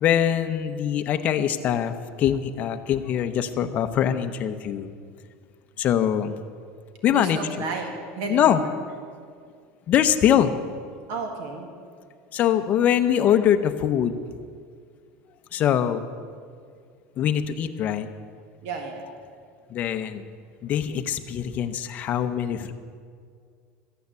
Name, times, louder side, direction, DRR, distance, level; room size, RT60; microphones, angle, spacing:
voice 1, 0.0-4.9 5.8-6.4 7.0-7.4 8.3-8.6 9.9-10.5 12.3-14.2 15.5-16.0 17.2-18.1 19.7-20.2 20.6-22.7, left 10 dB, 30° left, 7 dB, 0.7 m, -23 dB
voice 2, 7.1-8.7 11.1-11.7 18.6-19.1, right 3 dB, 60° right, 3 dB, 1.7 m, -32 dB
13.0 x 9.2 x 8.2 m, 2.1 s
cardioid pair, 165°, 5 cm